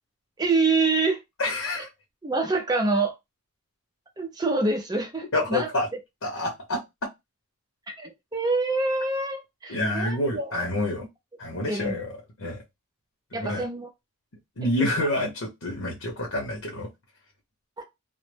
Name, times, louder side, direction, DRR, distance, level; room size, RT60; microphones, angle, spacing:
voice 1, 0.4-1.2 2.2-3.1 4.2-5.7 7.9-10.6 11.7-12.0 13.3-13.9 17.8-17.9, right 3 dB, 20° right, 0.5 m, -26 dB
voice 2, 1.4-1.9 5.3-5.9 6.2-7.1 9.7-11.0 11.4-12.1 12.4-12.6 13.3-13.6 14.6-16.9, left 1 dB, 70° left, 0.8 m, -28 dB
2.1 x 2.0 x 3.2 m
head